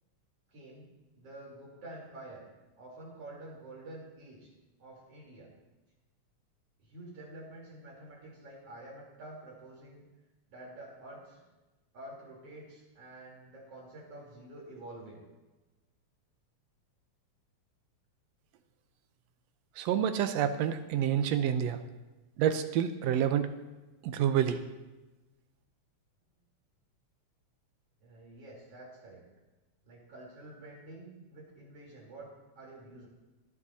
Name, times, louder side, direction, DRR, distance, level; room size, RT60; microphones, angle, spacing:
voice 1, 0.5-0.9 1.2-2.4 2.8-4.5 4.8-5.5 6.8-10.0 10.5-11.4 11.9-15.2 28.0-29.2 29.8-33.1, right 1 dB, 50° right, -4 dB, 4.6 m, -48 dB
voice 2, 19.8-21.8 22.4-23.5 24.0-24.6, right 9 dB, 75° right, 8 dB, 1.8 m, -28 dB
18.0 x 11.0 x 2.8 m, 1.1 s
omnidirectional pair, 3.4 m